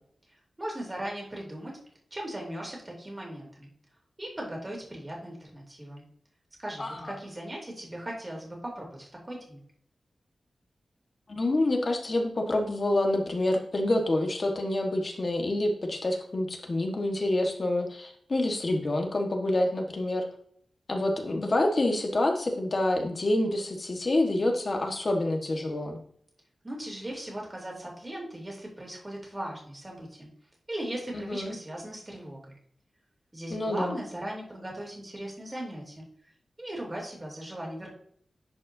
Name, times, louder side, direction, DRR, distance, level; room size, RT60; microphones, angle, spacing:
voice 1, 0.3-1.8 2.1-3.7 4.2-6.0 6.6-9.6 26.6-30.3 30.7-32.5 33.3-36.1 36.6-37.9, right 1 dB, 20° right, -2 dB, 2.9 m, -38 dB
voice 2, 6.8-7.1 11.3-20.2 20.9-26.0 31.1-31.6 33.5-34.0, left 1 dB, 45° left, 2 dB, 1.5 m, -27 dB
11.0 x 5.2 x 2.7 m, 0.63 s
wide cardioid pair, 100°, 0 cm